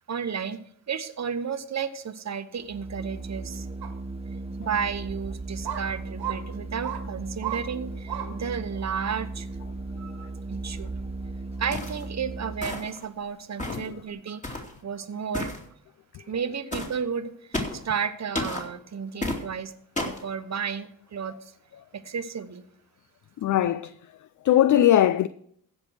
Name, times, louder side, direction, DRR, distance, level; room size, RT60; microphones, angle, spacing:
voice 1, 0.1-0.6 0.9-3.7 4.6-9.5 10.0-10.9 11.6-15.5 16.3-19.7 20.0-21.5 21.9-22.6, right 7 dB, 45° right, 1.1 m, -33 dB
Organ, 2.6-12.9, right 3 dB, 15° right, 0.7 m, -36 dB
sound 1, 3.8-3.9 4.6-4.7 5.6-5.8 6.2-6.4 6.8-7.0 7.4-7.6 8.1-8.3 8.8-8.9, right 11 dB, 90° right, 1.8 m, -32 dB
sound 2, 11.7-12.0 12.6-13.0 13.6-13.9 14.4-14.7 15.3-15.6 16.7-16.9 17.5-17.8 18.3-18.6 19.2-19.4 20.0-20.2, left 1 dB, 20° left, 2.7 m, -31 dB
voice 2, 13.7-14.0 17.7-17.8 20.1-20.2 23.4-23.9 24.4-25.3, left 12 dB, 55° left, 0.5 m, -21 dB
15.5 x 5.3 x 6.3 m
cardioid pair, 65°, 37 cm